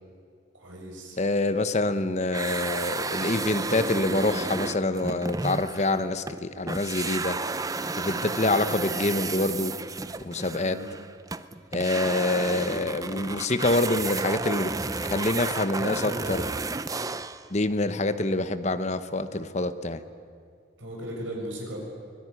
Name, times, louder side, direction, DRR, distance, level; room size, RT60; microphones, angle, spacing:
voice 1, 0.6-1.2 10.6-10.8 20.8-21.8, right 1 dB, 85° right, 0 dB, 7.0 m, -37 dB
voice 2, 1.2-7.4 8.0-9.8 10.2-10.8 11.7-16.5 17.5-20.0, left 2 dB, 35° left, 11 dB, 1.0 m, -26 dB
sound 1, 2.3-6.4 6.7-17.5, right 3 dB, 20° right, 0.6 m, -32 dB
24.0 x 18.0 x 9.8 m, 2.4 s
head